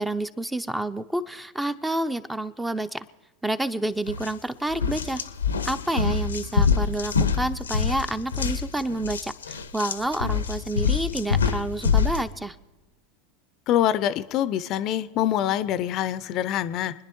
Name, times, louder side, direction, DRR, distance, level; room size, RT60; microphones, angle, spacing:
voice 1, 0.0-3.1 3.4-5.2 5.7-12.6, right 1 dB, 5° right, 12 dB, 0.6 m, -29 dB
sound 1, 4.1-4.3 4.7-12.2, left 6 dB, 85° left, 0.7 m, -25 dB
voice 2, 13.7-16.9, left 11 dB, 45° left, 16 dB, 0.5 m, -25 dB
26.5 x 10.0 x 3.0 m, 1.2 s
figure-of-eight pair, 85°, 0 cm